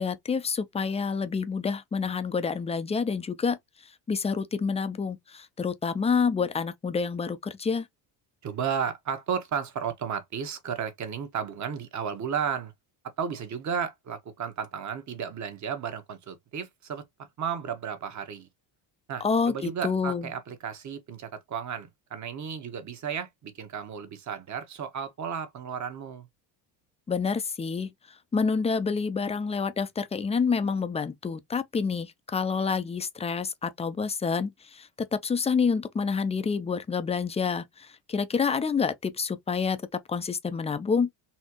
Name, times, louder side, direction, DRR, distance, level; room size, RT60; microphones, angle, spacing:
voice 1, 0.0-3.6 4.1-7.9 19.2-20.2 27.1-27.9 28.3-39.8 40.1-41.1, left 5 dB, 15° left, 0.5 m, -28 dB
voice 2, 8.4-12.7 13.2-17.0 17.4-18.5 19.1-26.3, right 7 dB, 40° right, 1.3 m, -33 dB
4.3 x 2.8 x 2.8 m
cardioid pair, 120°, 46 cm